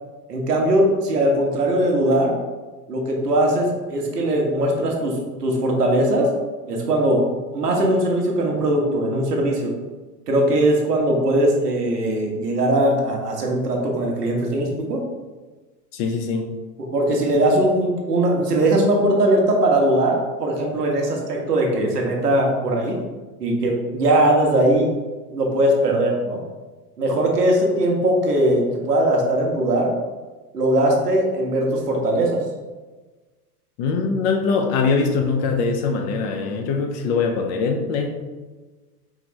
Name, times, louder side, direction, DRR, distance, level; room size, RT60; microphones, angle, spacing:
voice 1, 0.3-2.4 2.9-6.3 6.6-7.2 7.5-9.7 10.3-15.0 16.8-23.0 23.4-24.9 25.3-26.4 27.0-29.9 30.5-32.4, right 1 dB, 80° right, 0 dB, 1.1 m, -20 dB
voice 2, 15.9-16.5 33.8-38.2, left 4 dB, 35° left, 4 dB, 0.5 m, -22 dB
4.6 x 3.3 x 3.1 m, 1.3 s
figure-of-eight pair, 95°, 46 cm